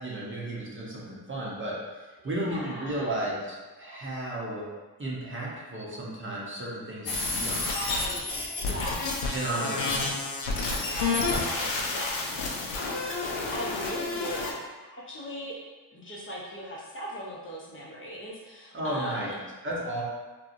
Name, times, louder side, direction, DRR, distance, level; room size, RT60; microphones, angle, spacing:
voice 1, 0.0-4.6 5.0-7.9 9.3-10.1 18.7-19.3 19.6-20.0, right 1 dB, 25° right, -5 dB, 0.8 m, -34 dB
voice 2, 2.2-3.2 7.6-10.1 10.8-14.5 14.8-15.5 15.9-19.3, equal, 25° left, -5 dB, 0.8 m, -39 dB
sound 1, 7.1-14.5, left 3 dB, 65° left, 0.7 m, -30 dB
2.8 x 2.3 x 2.6 m, 1.2 s
supercardioid pair, 60°, 48 cm